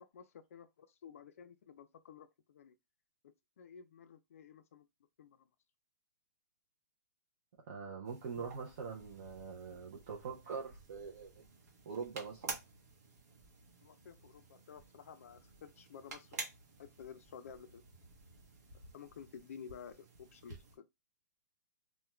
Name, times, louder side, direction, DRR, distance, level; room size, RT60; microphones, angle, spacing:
voice 1, 0.0-2.7 3.2-4.9 5.2-5.5 13.8-16.4 16.8-17.8 18.9-20.9, left 7 dB, 45° left, 0.3 m, -53 dB
voice 2, 7.7-11.4 11.9-12.6, right 5 dB, 35° right, 0.5 m, -43 dB
sound 1, 8.0-20.8, right 3 dB, 55° right, 0.9 m, -51 dB
2.3 x 2.2 x 3.0 m
hypercardioid pair, 180°, 10 cm